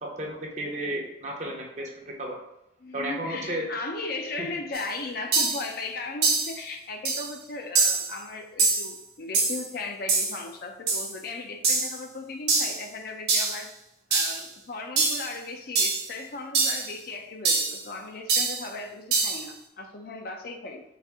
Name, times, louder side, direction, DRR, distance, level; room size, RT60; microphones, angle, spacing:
voice 1, 0.0-2.4 2.9-3.7 4.4-4.5, right 1 dB, 40° right, 0 dB, 0.8 m, -33 dB
voice 2, 2.8-13.7 14.1-20.8, left 3 dB, 55° left, 3 dB, 0.5 m, -37 dB
sound 1, 4.7-4.8 5.3-5.7 6.2-6.6 7.0-7.3 7.7-8.1 8.6-8.9 9.3-9.7 10.1-10.4 10.9-11.1 11.6-12.0 12.5-12.8 13.3-13.6 14.1-14.4 15.0-15.3 15.8-16.1 16.5-16.9 17.4-17.8 18.3-18.6 19.1-19.4, right 4 dB, 55° right, 1.1 m, -24 dB
4.1 x 2.5 x 3.5 m, 0.85 s
head